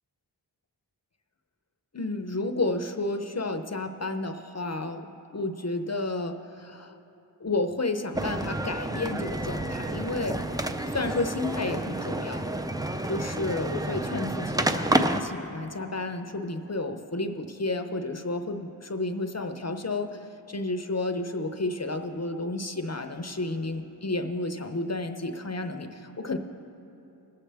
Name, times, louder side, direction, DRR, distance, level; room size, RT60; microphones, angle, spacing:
voice 1, 1.9-5.1 5.3-7.0 7.4-10.4 10.9-12.5 13.1-26.4, left 2 dB, 40° left, 6 dB, 0.6 m, -31 dB
sound 1, 8.1-15.2, right 1 dB, 10° right, 0.4 m, -29 dB
21.0 x 7.5 x 3.4 m, 2.8 s
wide cardioid pair, 45°, 42 cm